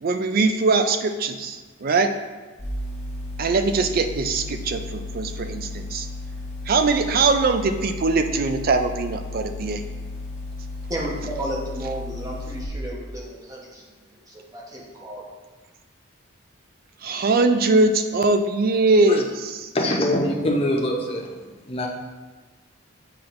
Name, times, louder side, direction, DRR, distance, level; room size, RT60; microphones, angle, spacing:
voice 1, 0.0-2.1 3.4-6.1 6.7-9.8 17.0-19.7, right 3 dB, 45° right, 8 dB, 0.4 m, -21 dB
sound 1, 2.6-12.7, left 2 dB, 10° left, 1.3 m, -34 dB
voice 2, 10.9-15.2, right 1 dB, 15° right, -3 dB, 0.9 m, -33 dB
voice 3, 19.7-21.3 21.7-21.9, left 1 dB, 30° left, -1 dB, 0.7 m, -23 dB
8.4 x 4.3 x 2.5 m, 1.3 s
head